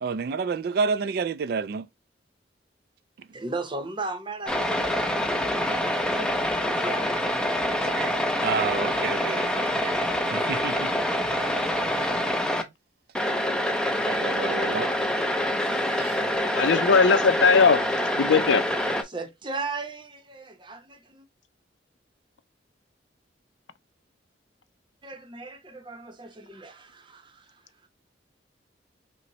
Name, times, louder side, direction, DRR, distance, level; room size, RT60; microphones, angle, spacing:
voice 1, 0.0-1.9 7.8-9.9 10.2-10.9 11.5-11.6 14.1-14.9 16.0-16.2, right 5 dB, 55° right, 0.3 m, -30 dB
voice 2, 3.3-7.2 8.9-9.0 9.3-9.4 19.1-21.3 25.0-27.5, right 3 dB, 25° right, 0.7 m, -37 dB
sound 1, 4.5-12.6 13.1-19.0, left 1 dB, 5° left, 0.5 m, -26 dB
voice 3, 16.5-17.8 18.1-18.6, left 5 dB, 80° left, 0.5 m, -19 dB
5.3 x 2.1 x 2.9 m
head